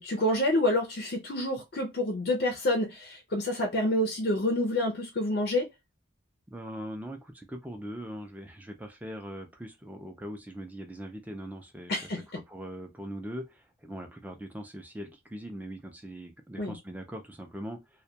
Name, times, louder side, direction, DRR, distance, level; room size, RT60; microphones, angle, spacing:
voice 1, 0.0-5.7 11.9-12.4 16.6-16.8, left 1 dB, 50° left, 0.5 m, -28 dB
voice 2, 6.5-12.0 12.5-18.0, equal, 10° right, 0.4 m, -41 dB
2.2 x 2.2 x 2.7 m
head